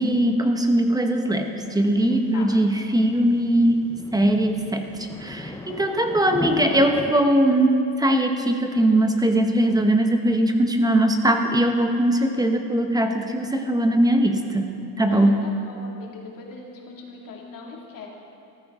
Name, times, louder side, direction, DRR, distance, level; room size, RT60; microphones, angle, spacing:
voice 1, 0.0-3.8 4.1-4.9 5.2-15.4, right 1 dB, 10° right, 5 dB, 0.9 m, -20 dB
sound 1, 1.6-7.2, left 2 dB, 10° left, 0.6 m, -36 dB
voice 2, 2.1-2.5 5.7-6.1 15.1-18.1, left 4 dB, 55° left, -1 dB, 2.4 m, -41 dB
14.0 x 13.5 x 3.7 m, 2.6 s
cardioid pair, 110°, 39 cm